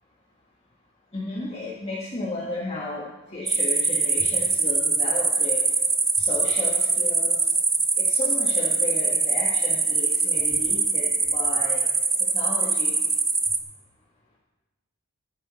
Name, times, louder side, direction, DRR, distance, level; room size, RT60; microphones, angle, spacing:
voice 1, 1.1-5.6 6.1-7.4 8.0-11.8 12.3-12.9, left 2 dB, 30° left, -6 dB, 1.7 m, -33 dB
sound 1, 3.5-13.6, right 4 dB, 10° right, 0.6 m, -23 dB
15.0 x 8.3 x 4.4 m, 1.1 s
head